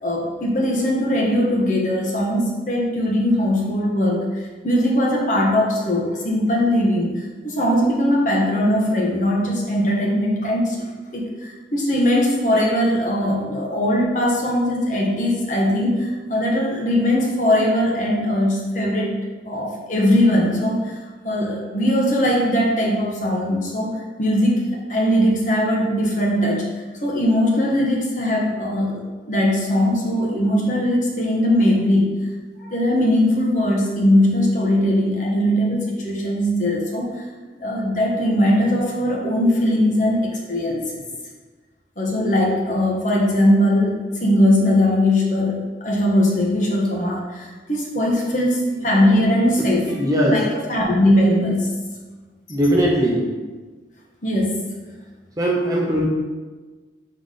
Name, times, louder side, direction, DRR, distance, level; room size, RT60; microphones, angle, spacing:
voice 1, 0.0-4.3 4.6-19.1 19.5-20.9 21.2-24.6 24.9-26.6 27.0-32.2 32.7-37.1 37.5-41.0 42.0-43.9 44.2-49.8 50.2-51.7 54.2-54.7, left 1 dB, 45° left, -2 dB, 1.1 m, -20 dB
voice 2, 49.9-50.4 52.5-53.3 55.4-56.0, equal, 20° right, -3 dB, 0.8 m, -20 dB
6.8 x 3.8 x 3.8 m, 1.3 s
head